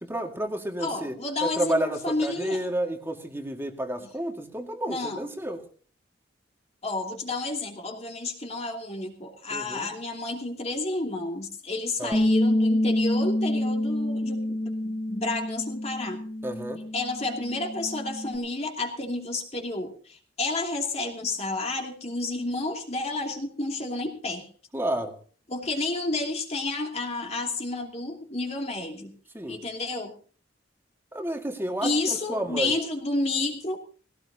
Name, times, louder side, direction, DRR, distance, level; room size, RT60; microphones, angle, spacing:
voice 1, 0.0-5.6 9.5-9.9 12.0-12.2 16.4-16.8 24.7-25.2 29.3-29.6 31.1-32.7, right 1 dB, 15° right, 4 dB, 2.0 m, -31 dB
voice 2, 0.8-2.6 4.9-5.2 6.8-16.2 16.9-24.5 25.5-29.1 29.5-30.1 31.8-33.8, left 2 dB, 35° left, 2 dB, 2.7 m, -31 dB
Bass guitar, 12.1-18.4, left 1 dB, 20° left, 1.7 m, -27 dB
19.5 x 17.5 x 2.8 m, 0.42 s
head